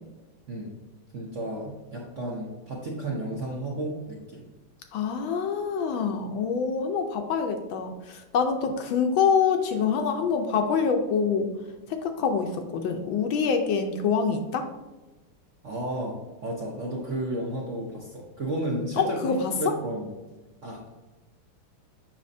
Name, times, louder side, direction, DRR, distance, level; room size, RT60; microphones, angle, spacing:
voice 1, 1.1-4.4 15.6-20.1 20.6-20.9, right 1 dB, 55° right, -3 dB, 0.9 m, -32 dB
voice 2, 4.9-11.5 11.9-14.7 18.9-19.5, left 6 dB, 75° left, 5 dB, 1.3 m, -26 dB
7.4 x 5.6 x 2.6 m, 1.2 s
omnidirectional pair, 2.4 m